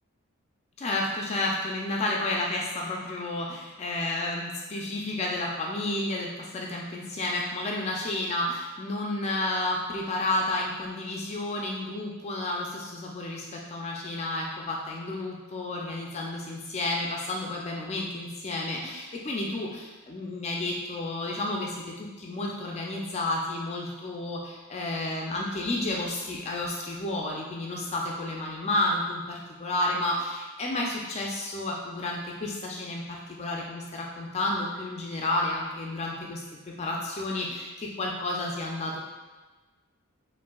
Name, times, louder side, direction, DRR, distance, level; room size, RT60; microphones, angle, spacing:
voice 1, 0.8-36.4 36.7-39.0, left 2 dB, 30° left, -2 dB, 0.3 m, -31 dB
5.4 x 2.6 x 2.3 m, 1.3 s
head